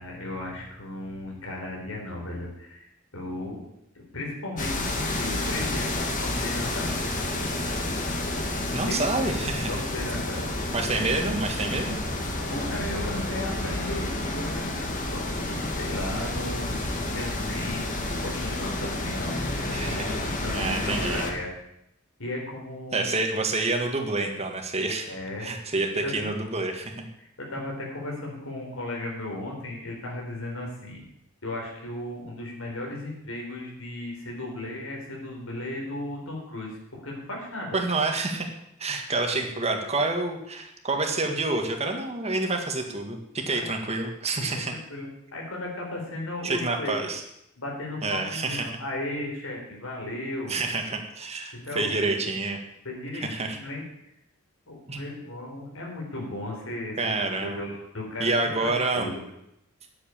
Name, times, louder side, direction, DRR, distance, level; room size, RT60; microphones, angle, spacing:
voice 1, 0.0-2.9 3.1-3.6 3.9-6.9 8.8-9.1 9.7-10.5 11.1-11.2 12.5-14.8 15.1-21.5 22.2-23.1 25.1-25.5 26.0-26.3 27.4-31.0 31.4-37.8 43.5-43.7 44.5-47.0 47.6-50.6 51.5-52.3 52.8-53.8 54.7-58.3 58.6-59.2, left 1 dB, 85° left, -1 dB, 4.5 m, -35 dB
sound 1, 4.6-21.3, left 2 dB, 40° left, 1.9 m, -30 dB
voice 2, 8.7-9.8 10.7-12.0 19.7-20.1 20.5-21.3 22.9-25.1 25.4-27.1 37.7-38.5 38.8-44.7 46.4-47.2 48.0-48.7 50.5-52.6 53.1-53.6 54.9-55.1 57.0-57.7 58.2-59.1, right 3 dB, 30° right, 4 dB, 1.8 m, -28 dB
10.5 x 7.7 x 8.7 m, 0.80 s
head